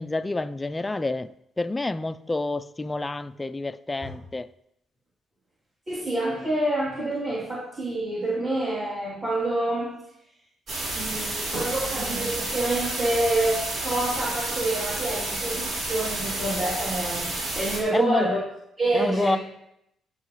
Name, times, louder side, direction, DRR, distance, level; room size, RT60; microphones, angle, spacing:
voice 1, 0.0-4.5 17.9-18.3 18.9-19.4, left 2 dB, 20° left, 0.4 m, -28 dB
voice 2, 5.9-10.0 10.9-18.4 18.8-19.4, right 1 dB, 35° right, 3.0 m, -27 dB
sound 1, 10.7-17.8, right 2 dB, 65° right, 3.0 m, -30 dB
16.0 x 5.5 x 3.1 m
cardioid pair, 90°, 0 cm